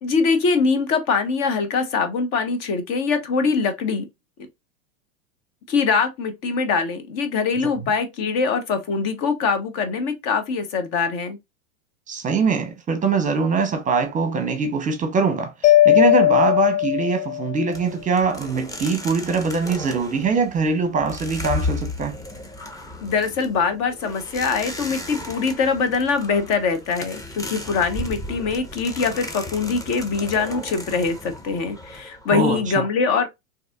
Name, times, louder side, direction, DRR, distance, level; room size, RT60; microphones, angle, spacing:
voice 1, 0.0-4.1 5.7-11.4 23.0-33.3, left 5 dB, 50° left, 1.0 m, -23 dB
voice 2, 12.1-22.2 32.3-32.6, right 4 dB, 20° right, 0.8 m, -22 dB
Mallet percussion, 15.6-17.7, left 14 dB, 80° left, 0.5 m, -17 dB
sound 1, 17.7-32.7, left 2 dB, 10° left, 0.8 m, -35 dB
3.9 x 2.8 x 2.3 m
hypercardioid pair, 100°, 36 cm